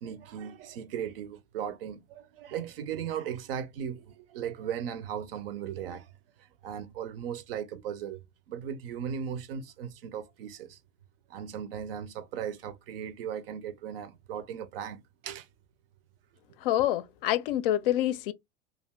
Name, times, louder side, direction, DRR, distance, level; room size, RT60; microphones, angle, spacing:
voice 1, 0.0-6.1 6.6-8.2 8.5-10.8 11.3-15.5 16.7-16.9, right 8 dB, 65° right, 0.5 m, -37 dB
voice 2, 16.6-18.3, left 13 dB, 60° left, 0.4 m, -27 dB
2.5 x 2.3 x 3.3 m
figure-of-eight pair, 80°, 31 cm